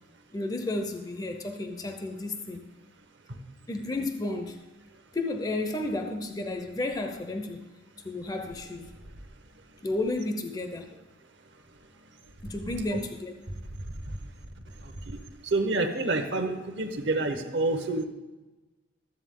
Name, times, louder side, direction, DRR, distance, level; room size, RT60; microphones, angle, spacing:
voice 1, 0.3-2.6 3.7-4.6 5.1-7.6 8.0-8.9 9.8-10.9 12.4-13.4, left 2 dB, 20° left, 6 dB, 0.5 m, -32 dB
voice 2, 15.4-18.0, right 2 dB, 65° right, 7 dB, 1.0 m, -28 dB
13.0 x 7.8 x 3.7 m, 1.2 s
head